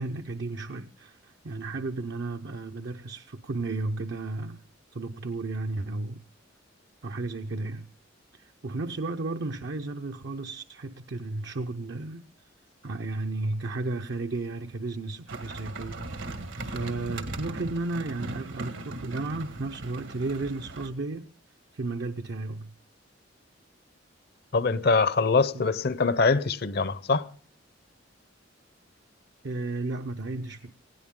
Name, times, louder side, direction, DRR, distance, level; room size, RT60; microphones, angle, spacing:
voice 1, 0.0-4.6 4.9-6.2 7.0-7.9 8.3-12.2 12.8-21.3 21.7-22.7 25.5-25.6 29.4-30.7, right 2 dB, 65° right, 0.7 m, -33 dB
sound 1, 15.3-20.9, right 2 dB, 80° right, 1.8 m, -38 dB
voice 2, 24.5-27.3, left 4 dB, 55° left, 0.7 m, -23 dB
19.0 x 16.5 x 3.7 m
head